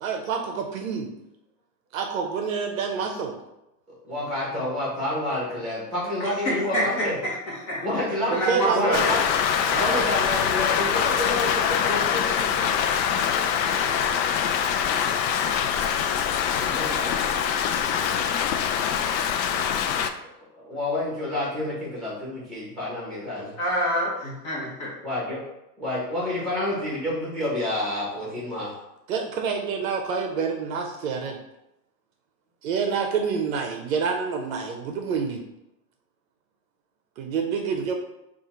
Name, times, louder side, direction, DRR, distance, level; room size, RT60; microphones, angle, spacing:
voice 1, 0.0-1.1 1.9-3.4 8.3-9.0 9.7-10.0 29.1-31.4 32.6-35.4 37.2-38.0, right 6 dB, 55° right, 3 dB, 0.6 m, -27 dB
voice 2, 3.9-7.2 7.8-8.4 8.7-9.2 9.8-12.7 16.6-17.3 20.5-23.5 25.0-25.4 25.8-28.7, left 1 dB, ahead, -5 dB, 1.2 m, -29 dB
voice 3, 6.2-7.4 7.7-7.9 8.3-9.1 23.6-24.9, equal, 30° left, -4 dB, 1.0 m, -26 dB
Rain, 8.9-20.1, left 8 dB, 85° left, 0.6 m, -24 dB
3.7 x 2.5 x 4.3 m, 0.90 s
supercardioid pair, 165°, 50 cm